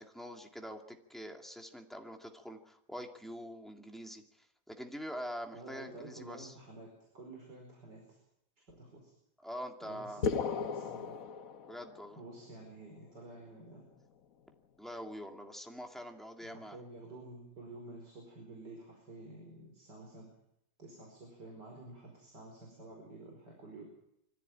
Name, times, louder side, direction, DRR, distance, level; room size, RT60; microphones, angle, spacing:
voice 1, 0.0-4.2 4.7-6.5 9.4-10.2 11.7-12.2 14.8-16.8, equal, ahead, 3 dB, 2.1 m, -44 dB
voice 2, 5.5-8.2 8.7-9.1 9.8-11.2 12.2-13.8 16.4-20.3 20.8-23.9, right 2 dB, 80° right, 1 dB, 5.5 m, -50 dB
sound 1, 10.2-12.2, left 5 dB, 60° left, 1.4 m, -35 dB
24.0 x 15.0 x 9.0 m, 0.80 s
omnidirectional pair, 1.8 m